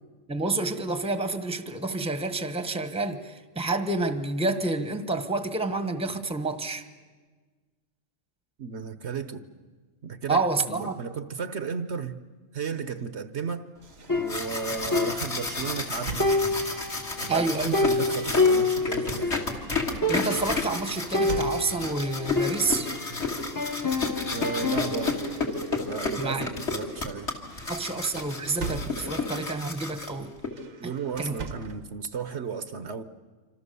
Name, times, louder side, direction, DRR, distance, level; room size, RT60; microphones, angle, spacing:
voice 1, 0.3-6.9 10.3-10.9 17.3-17.8 20.1-22.9 26.2-26.5 27.7-30.3 30.8-30.9 31.2-31.3, right 3 dB, 5° right, 1.1 m, -29 dB
voice 2, 8.6-9.4 10.0-12.2 12.5-13.7 14.1-16.3 17.2-19.4 24.3-25.2 25.8-27.3 30.8-33.0, right 6 dB, 60° right, 1.2 m, -34 dB
sound 1, 13.8-16.9 17.9-22.1 23.1-23.5 23.8-26.1 26.5-26.7 27.1-29.5 30.4-31.9, right 4 dB, 85° right, 1.7 m, -42 dB
sound 2, 14.0-30.5, left 3 dB, 60° left, 2.8 m, -32 dB
sound 3, 14.1-15.9 16.2-19.5 19.8-19.9 20.0-20.6 21.1-23.1 23.6-25.2, left 3 dB, 15° left, 1.0 m, -28 dB
27.0 x 26.0 x 6.9 m
omnidirectional pair, 1.3 m